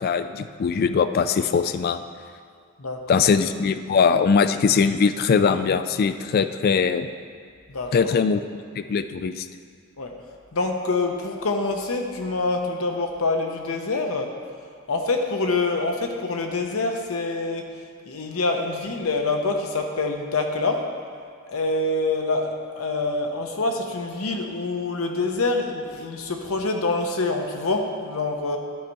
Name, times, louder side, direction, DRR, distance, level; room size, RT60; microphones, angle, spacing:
voice 1, 0.0-2.0 3.1-7.1 7.9-8.4 8.8-9.5, left 5 dB, 45° left, 10 dB, 0.3 m, -21 dB
voice 2, 2.8-3.2 7.7-8.1 10.0-10.1 10.5-14.3 14.9-17.6 18.1-20.9 21.5-28.6, left 3 dB, 75° left, 3 dB, 0.9 m, -26 dB
11.5 x 4.1 x 4.6 m, 2.2 s
head